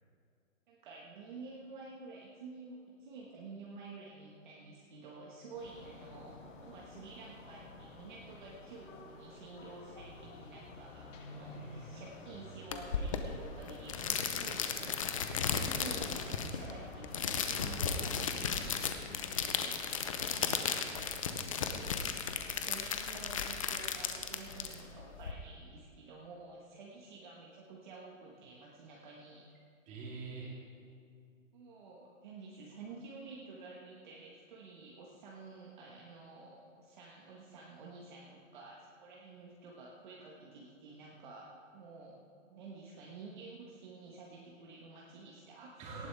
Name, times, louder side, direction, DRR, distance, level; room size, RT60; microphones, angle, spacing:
voice 1, 0.7-18.9 19.2-19.9 21.8-29.5 31.5-42.2 42.5-46.1, right 3 dB, 35° right, -3 dB, 1.5 m, -51 dB
sound 1, 5.5-18.2, left 2 dB, 70° left, 2.5 m, -51 dB
voice 2, 11.4-11.9 19.8-19.9 20.2-21.7 29.9-30.6 45.8-46.1, right 3 dB, 15° right, -3 dB, 2.4 m, -47 dB
sound 2, 12.7-25.3, left 6 dB, 25° left, 0.6 m, -35 dB
18.0 x 14.0 x 3.5 m, 2.4 s
hypercardioid pair, 160°, 40 cm